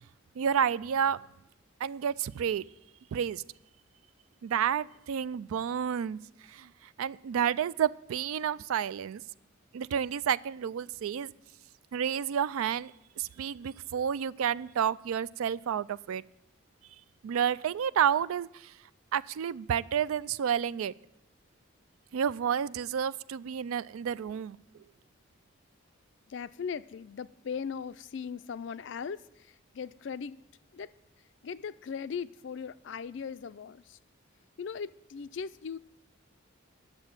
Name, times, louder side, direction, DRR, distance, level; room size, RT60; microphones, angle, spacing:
voice 1, 0.4-1.2 1.8-2.7 3.1-3.4 4.4-6.2 6.5-6.7 7.0-9.2 9.7-11.3 11.9-12.9 13.2-16.2 17.2-18.7 19.1-20.9 22.1-24.6, right 8 dB, 80° right, 18 dB, 0.3 m, -30 dB
voice 2, 26.3-30.4 30.7-30.9 31.4-34.0 34.6-35.8, left 6 dB, 60° left, 16 dB, 0.4 m, -39 dB
10.5 x 7.2 x 7.4 m, 0.85 s
head